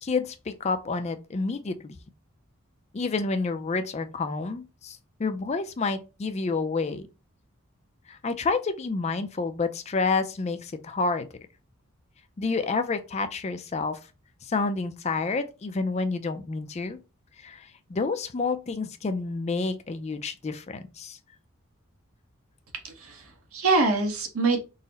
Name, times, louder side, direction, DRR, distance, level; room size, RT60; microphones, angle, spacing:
voice 1, 0.0-2.0 2.9-7.1 8.1-11.3 12.4-14.0 14.4-17.0 17.4-21.2, left 4 dB, 30° left, 0.3 m, -29 dB
voice 2, 22.8-24.6, right 3 dB, 80° right, 1.0 m, -25 dB
3.9 x 2.0 x 3.9 m
head